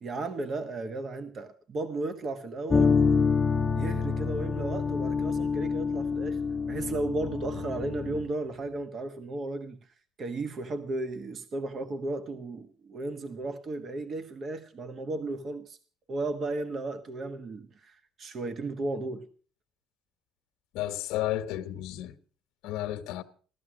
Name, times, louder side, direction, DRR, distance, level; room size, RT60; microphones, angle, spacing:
voice 1, 0.0-3.0 3.7-6.4 6.7-9.8 10.2-15.8 16.1-19.3, right 2 dB, 40° right, 1.3 m, -34 dB
sound 1, 2.7-8.3, left 5 dB, 20° left, 0.7 m, -27 dB
voice 2, 20.7-22.1 22.6-23.2, left 13 dB, 85° left, 1.2 m, -32 dB
16.0 x 13.0 x 6.1 m
cardioid pair, 140°, 0 cm